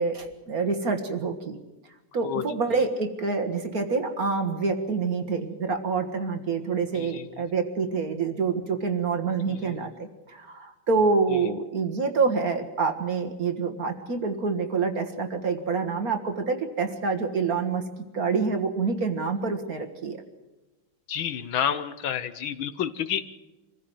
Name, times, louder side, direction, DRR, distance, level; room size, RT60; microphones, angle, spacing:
voice 1, 0.0-1.6 2.1-9.9 10.3-17.8 18.1-20.2, right 4 dB, 45° right, 6 dB, 1.9 m, -27 dB
voice 2, 7.0-7.3 9.5-9.8 21.1-23.4, left 9 dB, 70° left, 12 dB, 1.7 m, -30 dB
25.0 x 15.5 x 7.9 m, 1.1 s
omnidirectional pair, 2.3 m